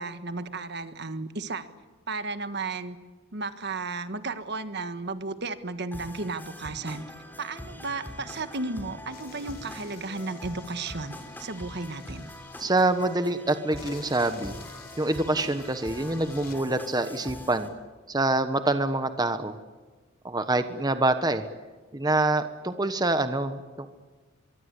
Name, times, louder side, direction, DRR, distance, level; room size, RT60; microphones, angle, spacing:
voice 1, 0.0-1.7 2.1-3.0 3.3-7.0 7.4-12.3, right 3 dB, 55° right, 10 dB, 1.5 m, -34 dB
sound 1, 5.9-17.7, left 1 dB, 10° left, 3.6 m, -43 dB
sound 2, 9.1-13.2 13.8-16.6, left 4 dB, 50° left, 3.8 m, -50 dB
voice 2, 12.6-14.6 15.0-17.7 18.1-19.6 20.2-21.4 21.9-23.9, right 2 dB, 20° right, 9 dB, 1.1 m, -26 dB
24.0 x 23.0 x 8.3 m, 1.3 s
head